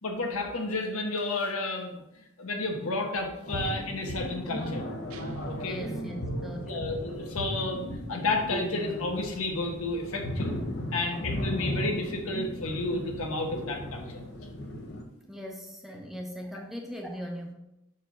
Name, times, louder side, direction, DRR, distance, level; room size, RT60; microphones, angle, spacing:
voice 1, 0.0-4.8 5.5-5.8 6.6-10.6 10.9-14.2, left 2 dB, 80° left, 2 dB, 1.2 m, -32 dB
sound 1, 3.5-15.0, left 1 dB, 50° left, 0.8 m, -35 dB
sound 2, 5.1-7.1, right 4 dB, 85° right, 0.7 m, -43 dB
voice 2, 5.6-7.0 15.3-17.5, equal, ahead, 1 dB, 0.7 m, -39 dB
6.0 x 4.6 x 5.2 m, 0.90 s
head